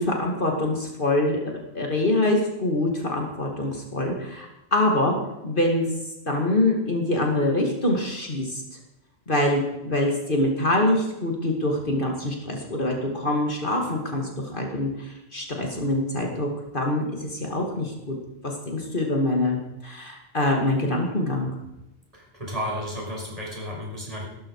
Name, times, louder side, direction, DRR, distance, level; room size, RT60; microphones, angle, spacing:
voice 1, 0.0-5.2 5.4-5.9 6.3-8.6 9.3-16.5 16.7-18.2 18.4-21.5, left 1 dB, 50° left, 1 dB, 2.6 m, -25 dB
voice 2, 22.1-24.3, equal, 35° right, -2 dB, 5.7 m, -32 dB
17.0 x 13.0 x 4.9 m, 0.94 s
omnidirectional pair, 1.1 m